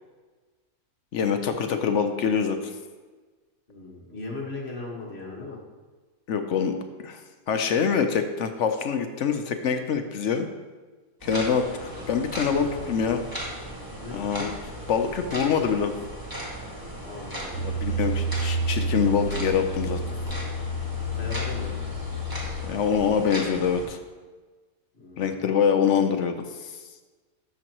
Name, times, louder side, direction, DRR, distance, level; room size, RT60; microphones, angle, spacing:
voice 1, 1.1-2.7 6.3-6.7 7.0-7.2 7.5-10.5 11.2-11.6 12.1-13.2 14.1-14.5 14.9-15.9 17.6-20.0 22.6-24.0 25.2-26.8, left 6 dB, 60° left, 7 dB, 0.8 m, -25 dB
voice 2, 3.7-5.6 11.7-12.1 12.4-13.0 14.0-14.5 17.0-17.8 21.1-21.8 24.9-25.4, left 2 dB, 45° left, -2 dB, 1.7 m, -38 dB
sound 1, 11.2-23.9, equal, 15° right, 1.6 m, -37 dB
sound 2, 17.5-22.6, right 1 dB, 65° right, 2.7 m, -29 dB
12.5 x 6.2 x 3.0 m, 1.3 s
omnidirectional pair, 1.6 m